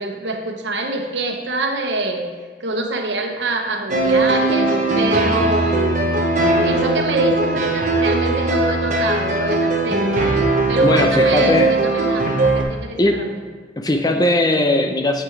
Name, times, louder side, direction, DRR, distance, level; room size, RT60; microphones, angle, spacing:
voice 1, 0.0-2.3 2.6-6.0 6.6-10.3 10.7-13.3, right 2 dB, 90° right, 3 dB, 1.1 m, -25 dB
sound 1, 3.9-12.6, right 2 dB, 45° right, 0.8 m, -19 dB
voice 2, 10.8-11.7 12.3-12.4 13.0-13.2 13.8-15.2, left 1 dB, 20° left, 4 dB, 0.6 m, -19 dB
8.2 x 8.0 x 3.3 m, 1.5 s
head